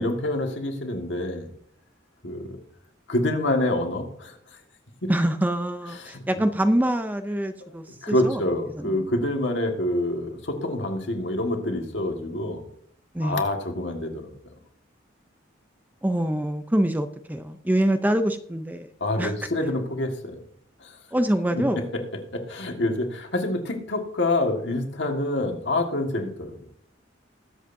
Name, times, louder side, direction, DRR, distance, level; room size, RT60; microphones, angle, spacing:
voice 1, 0.0-1.5 2.2-2.6 3.1-4.4 5.0-5.1 6.0-6.2 8.0-12.6 13.2-14.3 19.0-20.4 20.8-21.0 21.5-21.8 22.3-26.6, left 1 dB, 65° left, 3 dB, 1.7 m, -27 dB
voice 2, 5.1-8.4 8.8-9.0 13.1-13.4 16.0-18.9 19.2-19.3 21.1-21.9, right 1 dB, 10° right, 8 dB, 0.4 m, -25 dB
21.0 x 7.8 x 2.7 m, 0.66 s
head